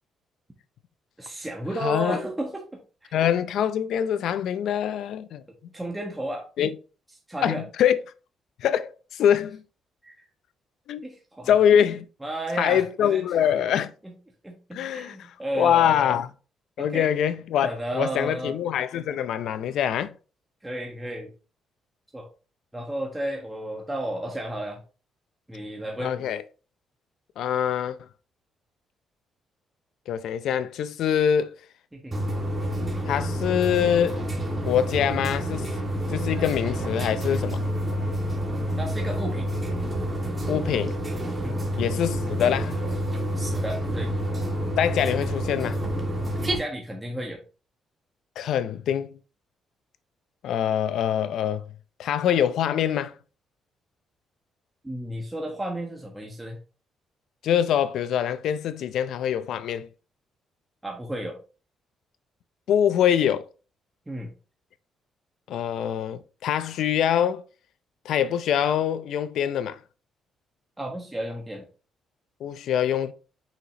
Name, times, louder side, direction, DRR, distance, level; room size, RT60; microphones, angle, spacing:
voice 1, 1.2-3.2 5.7-6.4 7.3-7.6 10.0-10.2 11.0-11.6 12.2-13.2 14.0-14.2 14.4-16.1 16.8-17.1 17.6-18.6 20.6-21.3 22.1-22.3 22.7-24.8 25.5-26.2 31.9-32.2 38.8-39.5 41.4-41.7 43.3-44.1 46.5-47.4 54.8-56.6 60.8-61.4 64.1-64.3 70.8-71.7, right 1 dB, 10° right, 1.4 m, -33 dB
voice 2, 1.8-2.2 3.1-5.4 6.6-6.7 7.4-8.0 8.6-9.6 10.9-11.0 11.5-12.0 12.6-13.9 14.7-15.2 15.5-16.3 16.8-20.1 26.0-26.4 27.4-28.1 30.1-31.6 33.1-34.2 34.6-35.7 36.1-37.6 40.5-41.0 41.8-42.8 44.8-45.8 48.4-49.1 50.4-51.6 52.0-53.2 57.4-59.9 62.7-63.5 65.5-67.4 68.0-69.8 72.4-73.1, left 9 dB, 75° left, 0.5 m, -24 dB
sound 1, 32.1-46.6, equal, 25° right, 2.1 m, -28 dB
5.9 x 5.6 x 2.9 m
cardioid pair, 90°, 0 cm